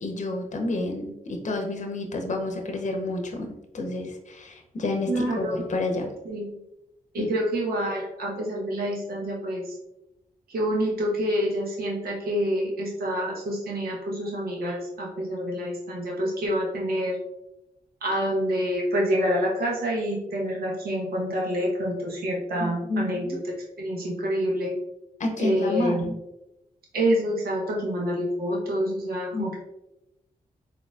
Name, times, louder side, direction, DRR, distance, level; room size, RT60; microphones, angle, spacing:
voice 1, 0.0-6.1 7.2-7.3 22.6-23.4 25.2-26.2 29.3-29.6, left 2 dB, 50° left, 3 dB, 0.7 m, -30 dB
voice 2, 5.1-5.6 6.2-6.5 7.1-9.7 10.5-17.2 18.0-23.4 23.8-24.7 25.4-26.1 26.9-29.6, equal, 90° right, -3 dB, 1.0 m, -27 dB
4.1 x 2.8 x 2.3 m, 0.88 s
cardioid pair, 55°, 15 cm